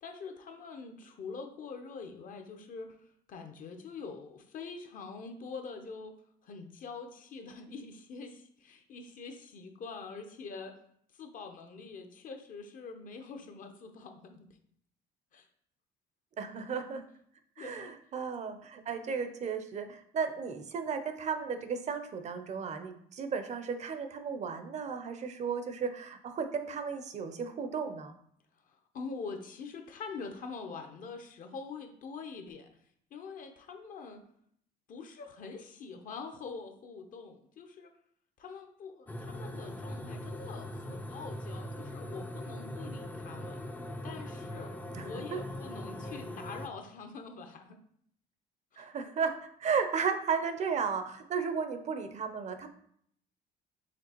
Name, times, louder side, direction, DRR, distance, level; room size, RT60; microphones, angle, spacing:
voice 1, 0.0-6.1 6.4-10.8 11.1-14.6 15.3-15.5 17.6-17.9 28.7-32.7 33.1-34.2 34.9-37.9 38.4-43.6 44.0-44.7 45.0-47.8 48.7-48.9, left 4 dB, 55° left, 6 dB, 0.7 m, -44 dB
voice 2, 16.4-17.0 17.6-28.1 44.9-45.0 45.3-45.4 48.8-49.3 49.6-52.7, right 6 dB, 45° right, 8 dB, 0.5 m, -34 dB
sound 1, 39.1-46.7, left 1 dB, 10° left, 0.4 m, -41 dB
5.0 x 3.2 x 2.9 m, 0.66 s
cardioid pair, 110°, 17 cm